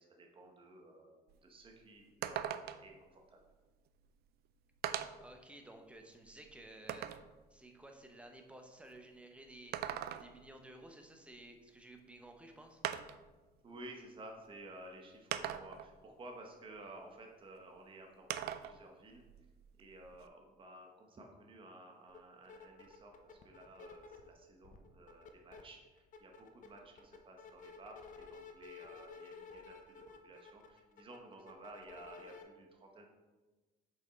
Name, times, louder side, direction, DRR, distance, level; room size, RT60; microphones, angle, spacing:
voice 1, 0.0-3.4 13.6-19.2 19.8-33.1, right 1 dB, 30° right, 2 dB, 1.0 m, -54 dB
sound 1, 1.3-1.4 1.7-1.8 2.2-3.0 4.0-4.1 4.8-5.3 5.9-7.3 9.5-10.5 12.0-12.1 12.8-13.3 14.3-14.4 15.3-15.9 18.3-18.8 19.1-20.3, right 11 dB, 70° right, 0.4 m, -40 dB
voice 2, 5.2-7.1 7.5-9.7 10.2-12.8, right 1 dB, 5° right, 3 dB, 0.9 m, -54 dB
sound 2, 22.1-22.2 22.4-24.3 24.6-25.6 26.0-32.4, left 5 dB, 50° left, 0.8 m, -53 dB
6.0 x 5.5 x 4.0 m, 1.2 s
cardioid pair, 110°, 17 cm